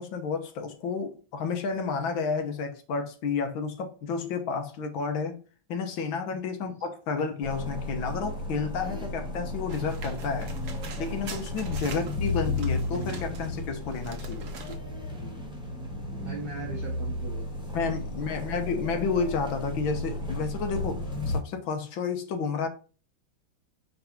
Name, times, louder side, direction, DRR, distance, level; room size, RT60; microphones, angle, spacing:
voice 1, 0.0-5.4 5.7-10.5 11.0-14.5 17.7-22.7, left 5 dB, 75° left, 1.7 m, -31 dB
sound 1, 7.4-21.4, left 2 dB, 5° right, 0.6 m, -34 dB
sound 2, 9.7-13.5 13.8-14.8, right 6 dB, 60° right, 1.3 m, -45 dB
voice 2, 16.1-18.0 18.3-18.7, right 4 dB, 40° right, 0.9 m, -41 dB
4.6 x 3.9 x 5.7 m
omnidirectional pair, 2.2 m